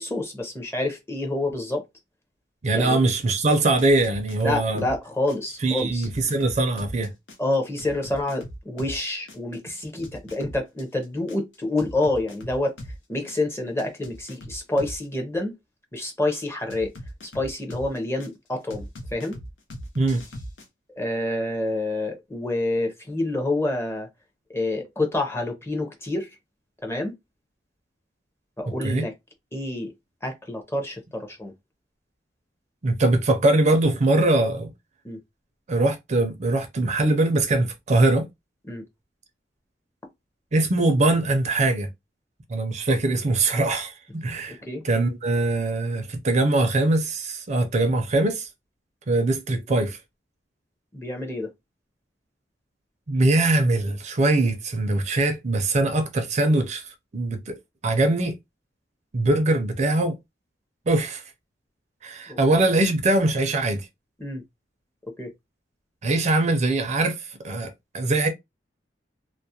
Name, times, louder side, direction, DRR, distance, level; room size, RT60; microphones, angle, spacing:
voice 1, 0.0-1.8 2.7-3.0 4.4-6.1 7.4-12.8 13.1-15.5 15.9-16.9 17.3-19.4 21.0-24.1 24.5-26.4 26.8-27.1 28.6-29.1 29.5-29.9 30.2-31.5 35.0-35.2 38.7-38.8 44.5-44.8 50.9-51.5 62.3-62.4 64.2-64.4 65.2-65.3, left 2 dB, 15° left, 0.6 m, -28 dB
voice 2, 2.6-4.9 5.6-7.1 20.0-20.2 28.8-29.0 32.8-34.7 35.7-38.3 40.5-41.9 42.5-44.6 44.8-48.5 49.1-50.0 53.1-56.8 57.1-57.6 57.8-58.4 59.1-60.2 60.9-61.2 62.0-63.8 66.0-68.3, right 2 dB, 40° right, 0.5 m, -22 dB
sound 1, 3.8-5.0 5.3-9.0 9.3-13.0 13.3-15.1 16.7-18.3 18.7-20.7, equal, 75° left, 0.7 m, -40 dB
2.3 x 2.1 x 2.7 m
head